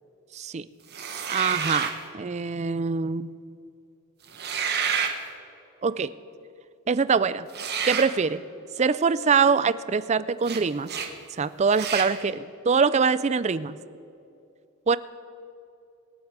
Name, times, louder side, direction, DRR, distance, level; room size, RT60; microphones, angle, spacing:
voice 1, 0.3-0.7 1.3-3.3 5.8-6.1 6.9-7.5 7.8-8.4 8.8-10.9 11.4-13.8 14.9-15.0, right 5 dB, 30° right, 16 dB, 0.4 m, -24 dB
sound 1, 0.9-2.0 4.3-5.2 7.5-8.1 10.4-10.6 10.9-11.1 11.7-12.1, right 6 dB, 45° right, 1.3 m, -29 dB
24.5 x 8.6 x 4.8 m, 2.6 s
head